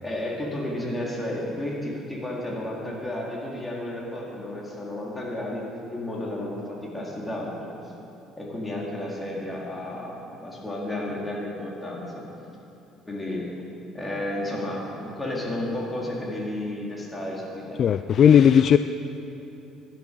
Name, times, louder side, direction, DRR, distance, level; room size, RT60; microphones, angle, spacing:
voice 1, 0.0-5.7 5.9-7.7 8.4-12.2 13.0-13.5 13.9-17.8, left 1 dB, 15° left, -3 dB, 4.1 m, -32 dB
voice 2, 17.8-18.8, left 8 dB, 55° left, 11 dB, 0.4 m, -16 dB
17.5 x 11.5 x 5.5 m, 2.9 s
supercardioid pair, 85°, 0 cm